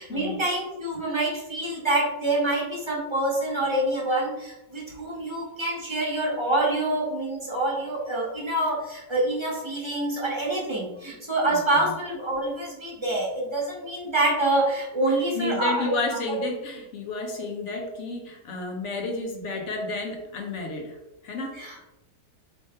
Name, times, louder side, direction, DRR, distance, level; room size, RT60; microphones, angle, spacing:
voice 1, 0.0-16.0 21.5-21.8, right 2 dB, 20° right, -4 dB, 0.9 m, -26 dB
voice 2, 15.1-21.0 21.2-21.6, left 3 dB, 55° left, 2 dB, 1.0 m, -31 dB
3.2 x 3.2 x 4.3 m, 0.97 s
omnidirectional pair, 1.7 m